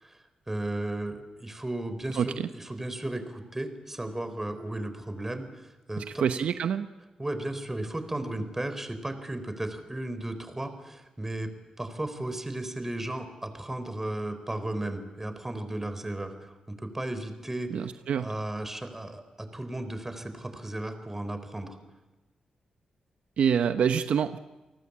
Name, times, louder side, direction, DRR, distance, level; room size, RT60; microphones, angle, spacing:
voice 1, 0.5-6.2 7.2-17.7 18.2-21.8, right 1 dB, 15° right, 10 dB, 4.1 m, -35 dB
voice 2, 2.2-2.5 6.0-6.9 17.7-18.3 23.4-24.4, right 7 dB, 80° right, 9 dB, 1.0 m, -26 dB
29.5 x 19.0 x 8.6 m, 1.1 s
cardioid pair, 75°, 2 cm